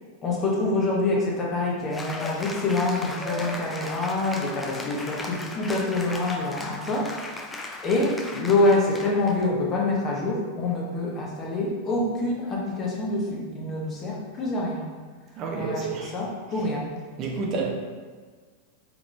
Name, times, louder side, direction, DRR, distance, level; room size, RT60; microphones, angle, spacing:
voice 1, 0.2-7.1 7.8-14.9 15.5-16.9, left 2 dB, 30° left, -2 dB, 0.9 m, -26 dB
Cheering / Applause, 1.9-9.4, left 2 dB, 10° left, 0.4 m, -37 dB
voice 2, 15.4-16.1 17.2-17.7, right 4 dB, 35° right, -1 dB, 0.6 m, -29 dB
5.0 x 3.2 x 2.4 m, 1.5 s
figure-of-eight pair, 90°, 0 cm